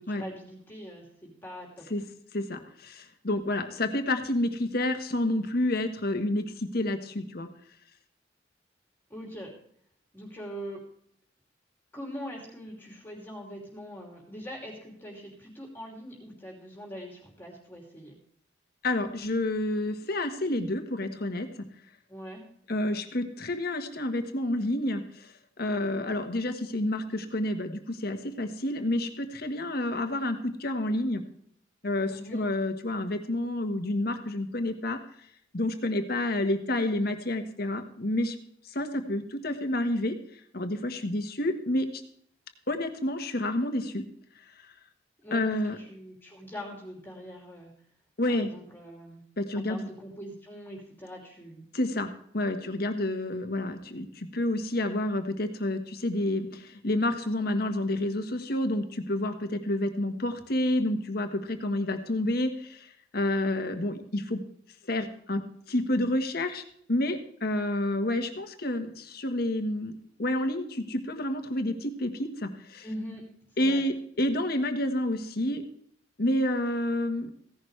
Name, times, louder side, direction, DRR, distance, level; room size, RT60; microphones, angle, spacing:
voice 1, 0.0-1.9 9.1-9.5 10.1-10.8 11.9-18.2 22.1-22.4 32.1-32.4 45.2-47.7 48.3-49.2 49.6-51.6 72.8-73.2 73.6-73.8, equal, 10° left, -1 dB, 2.9 m, -42 dB
voice 2, 2.3-7.5 18.8-21.7 22.7-31.2 31.8-35.0 35.5-38.4 38.6-40.1 40.5-42.0 42.7-44.0 44.6-44.7 45.3-45.8 48.2-48.5 49.4-49.9 51.7-64.4 64.9-66.6 66.9-69.9 70.2-72.9 73.6-75.6 76.2-77.3, left 1 dB, 55° left, 6 dB, 1.5 m, -29 dB
16.0 x 11.0 x 3.4 m, 0.65 s
head